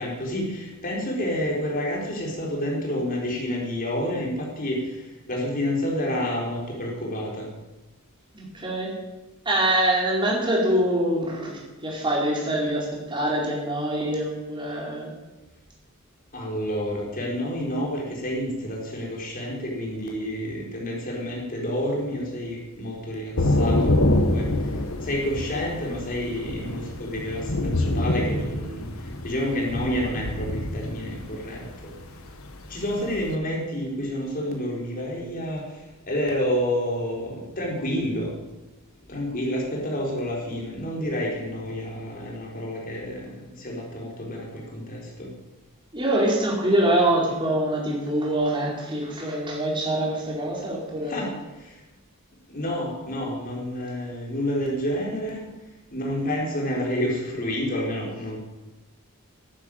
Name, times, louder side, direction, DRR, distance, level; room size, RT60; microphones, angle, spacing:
voice 1, 0.0-4.8 5.3-7.5 16.3-24.5 25.0-28.9 29.2-31.6 32.7-35.6 36.1-38.3 39.1-45.3 51.1-51.4 52.5-55.5 55.9-58.4, equal, 40° left, -1 dB, 4.4 m, -29 dB
voice 2, 8.3-8.9 9.4-15.1 45.9-51.2, right 1 dB, 25° right, -3 dB, 4.6 m, -24 dB
Thunder / Rain, 23.4-33.3, left 1 dB, 75° left, 1.5 m, -26 dB
11.5 x 10.5 x 9.0 m, 1.1 s
head